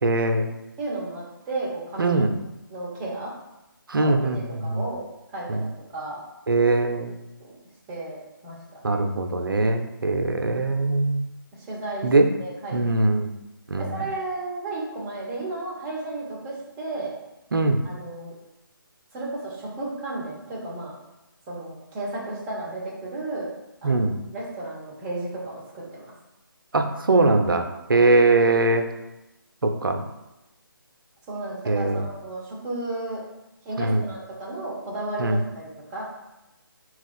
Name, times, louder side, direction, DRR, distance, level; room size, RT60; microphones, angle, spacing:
voice 1, 0.0-0.5 2.0-2.3 3.9-4.9 5.5-5.7 6.5-7.1 8.8-11.2 12.0-12.3 12.7-13.3 13.7-14.0 17.5-17.8 23.8-24.2 26.7-28.9 29.6-30.1 31.7-32.0 33.8-34.1 35.2-35.4, right 2 dB, 70° right, 5 dB, 0.5 m, -21 dB
voice 2, 0.8-2.2 2.7-3.3 4.0-5.0 5.3-6.2 7.4-7.5 7.9-9.0 11.5-12.1 12.4-13.0 13.8-17.1 17.8-18.3 19.1-20.9 21.5-23.5 23.8-26.1 27.9-28.1 31.3-33.2 33.6-36.0, right 2 dB, 15° right, -4 dB, 0.7 m, -33 dB
4.1 x 2.3 x 4.2 m, 0.96 s
figure-of-eight pair, 150°, 12 cm